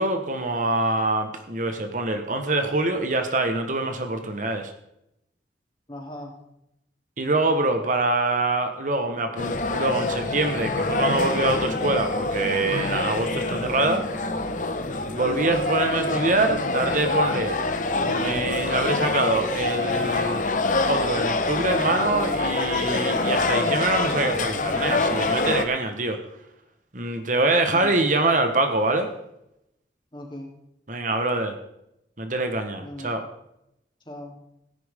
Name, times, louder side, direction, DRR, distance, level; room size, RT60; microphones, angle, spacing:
voice 1, 0.0-4.7 7.2-14.0 15.1-17.6 18.0-20.5 20.8-26.2 26.9-29.1 30.9-31.6 32.2-33.2, right 2 dB, 45° right, 6 dB, 1.4 m, -24 dB
voice 2, 5.9-6.4 15.2-15.4 27.7-28.0 30.1-30.5 32.8-33.1 34.0-34.4, left 1 dB, 25° left, 0 dB, 3.3 m, -38 dB
sound 1, 9.4-25.6, left 2 dB, 45° left, 1.2 m, -26 dB
16.5 x 10.5 x 3.7 m, 0.82 s
head